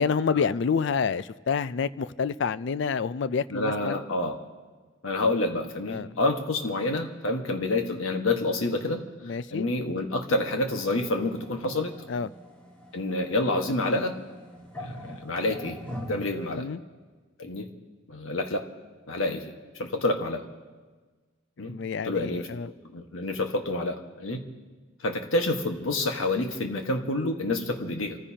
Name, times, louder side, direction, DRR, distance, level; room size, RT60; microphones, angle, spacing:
voice 1, 0.0-4.0 5.9-6.1 9.2-9.7 12.1-12.3 16.6-16.8 21.6-22.7, left 6 dB, 60° left, 16 dB, 0.4 m, -28 dB
voice 2, 3.5-4.4 5.0-9.0 9.5-11.9 12.9-14.2 14.8-16.6 17.4-17.7 18.1-18.7 19.1-20.4 21.6-21.7 22.0-22.5 22.9-24.4 25.0-28.2, left 2 dB, 90° left, 4 dB, 1.4 m, -28 dB
sound 1, 10.7-16.5, equal, 5° left, 1.7 m, -43 dB
28.5 x 15.0 x 2.9 m, 1.4 s
head